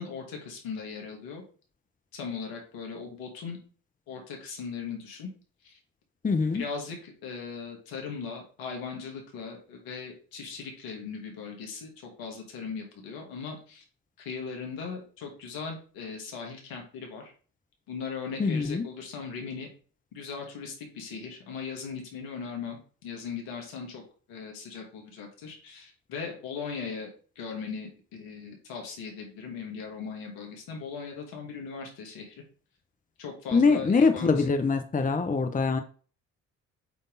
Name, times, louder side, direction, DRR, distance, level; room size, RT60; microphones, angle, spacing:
voice 1, 0.0-1.4 2.1-3.6 4.1-5.3 5.6-5.8 6.5-13.8 14.2-17.3 17.9-19.7 20.1-24.0 24.3-27.1 27.4-32.4 33.2-34.5, left 5 dB, 75° left, 2 dB, 2.4 m, -38 dB
voice 2, 6.2-6.6 18.4-18.8 33.5-35.8, left 4 dB, 20° left, 7 dB, 0.9 m, -23 dB
8.3 x 3.5 x 4.0 m, 0.40 s
hypercardioid pair, 60°, 37 cm